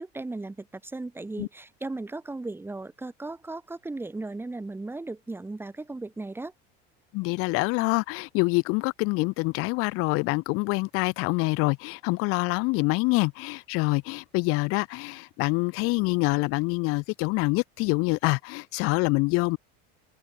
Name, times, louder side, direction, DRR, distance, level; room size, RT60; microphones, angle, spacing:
voice 1, 0.0-6.5, right 2 dB, 5° right, 5.9 m, -36 dB
voice 2, 7.1-19.6, left 25 dB, 45° left, 0.8 m, -26 dB
open air
cardioid pair, 160°, 30 cm